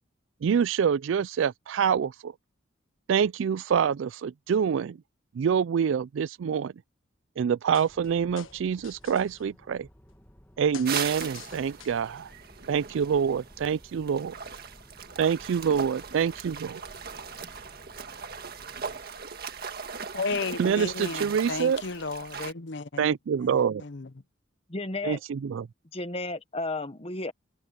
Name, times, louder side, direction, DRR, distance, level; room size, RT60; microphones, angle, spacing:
voice 1, 0.4-2.3 3.1-5.0 5.3-6.7 7.4-9.9 10.6-12.3 12.7-14.3 15.2-16.8 20.6-21.8 23.0-23.8 25.0-25.7, right 7 dB, 65° right, 0.3 m, -26 dB
sound 1, 7.7-8.1 8.4-9.4 10.7-12.1, left 7 dB, 75° left, 1.4 m, -44 dB
sound 2, 7.9-19.0, equal, 10° left, 2.0 m, -56 dB
sound 3, 10.8-22.5, right 6 dB, 50° right, 1.7 m, -39 dB
voice 2, 20.1-23.0 23.4-23.5 23.8-24.1, left 4 dB, 60° left, 0.8 m, -33 dB
voice 3, 24.7-25.2 25.9-27.3, left 2 dB, 30° left, 1.2 m, -33 dB
head